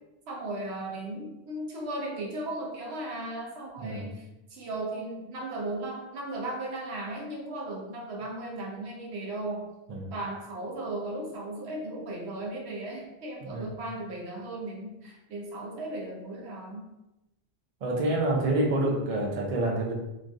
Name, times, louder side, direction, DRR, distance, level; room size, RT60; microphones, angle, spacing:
voice 1, 0.3-9.7 10.1-16.9, right 2 dB, 80° right, -1 dB, 0.9 m, -36 dB
voice 2, 17.8-19.9, right 1 dB, 45° right, -1 dB, 0.5 m, -27 dB
3.1 x 2.3 x 2.5 m, 0.93 s
omnidirectional pair, 1.1 m